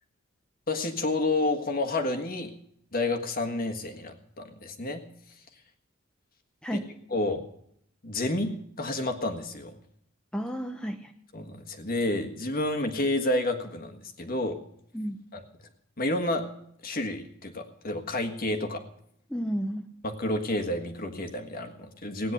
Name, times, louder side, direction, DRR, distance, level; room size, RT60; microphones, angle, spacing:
voice 1, 0.7-2.5 2.9-5.0 6.7-6.8 7.1-7.4 8.0-8.5 8.8-9.8 11.3-14.6 15.3-15.4 16.0-16.5 16.8-18.8 20.0-22.3, left 2 dB, 45° left, 5 dB, 1.6 m, -30 dB
voice 2, 6.6-6.9 10.3-11.1 14.9-15.2 19.3-19.9, equal, 5° left, 4 dB, 0.6 m, -32 dB
17.0 x 9.5 x 6.6 m, 0.71 s
head